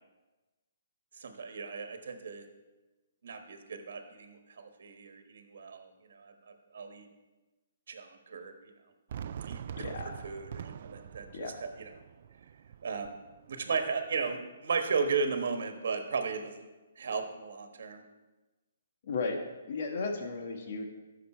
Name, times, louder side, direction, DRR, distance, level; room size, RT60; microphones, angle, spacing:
voice 1, 1.2-2.4 3.2-6.3 6.7-7.1 7.9-8.7 9.5-9.9 10.2-11.9 12.8-13.1 13.5-16.7 17.0-18.0, right 5 dB, 65° right, 6 dB, 1.3 m, -35 dB
Fireworks, 9.1-14.1, right 9 dB, 45° right, 0.3 m, -44 dB
voice 2, 9.8-10.2 11.3-11.6 19.0-19.4 19.7-20.8, left 4 dB, 50° left, 3 dB, 1.4 m, -35 dB
13.5 x 6.7 x 4.4 m, 1.2 s
hypercardioid pair, 165°, 0 cm